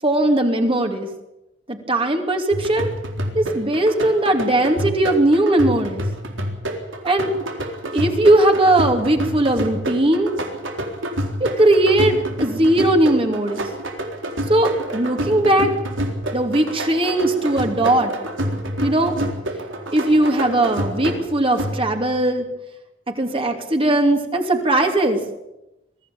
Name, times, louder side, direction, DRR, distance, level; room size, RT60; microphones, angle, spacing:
voice 1, 0.0-1.1 1.7-2.9 3.3-6.0 7.0-7.3 7.9-10.3 11.6-13.6 14.5-15.7 16.3-18.1 18.8-19.1 19.9-22.5 23.1-25.2, right 1 dB, 30° right, 4 dB, 2.8 m, -18 dB
sound 1, 2.5-22.2, right 1 dB, 90° right, 3.9 m, -28 dB
22.5 x 15.5 x 8.7 m, 0.93 s
head